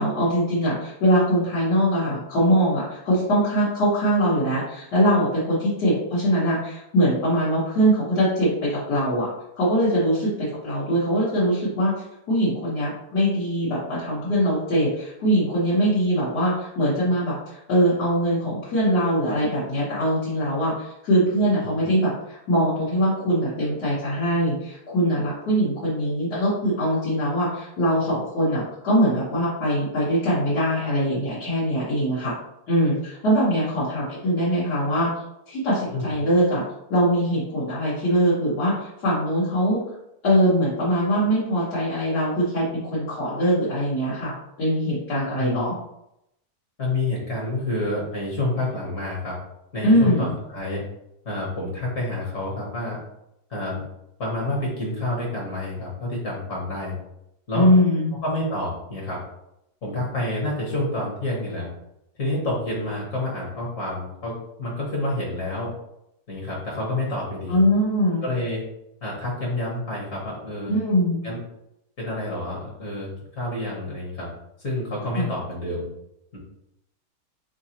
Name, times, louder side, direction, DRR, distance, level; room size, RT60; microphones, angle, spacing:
voice 1, 0.0-9.3 9.6-11.9 12.3-32.3 32.7-35.1 35.5-36.6 36.9-38.7 39.0-39.8 40.2-45.7 49.8-50.3 57.5-58.1 67.5-68.3 70.7-71.2 75.1-75.3, equal, 80° left, -11 dB, 1.9 m, -22 dB
voice 2, 46.8-49.3 49.7-50.8 51.2-53.0 53.5-53.8 54.2-57.0 57.5-57.7 58.2-59.2 59.8-61.7 62.2-65.7 66.3-67.6 68.2-68.6 69.0-70.7 71.2-71.4 72.0-74.3 74.6-75.9 76.3-76.4, left 1 dB, 50° left, -3 dB, 1.5 m, -28 dB
3.9 x 3.9 x 2.9 m, 0.81 s
omnidirectional pair, 1.8 m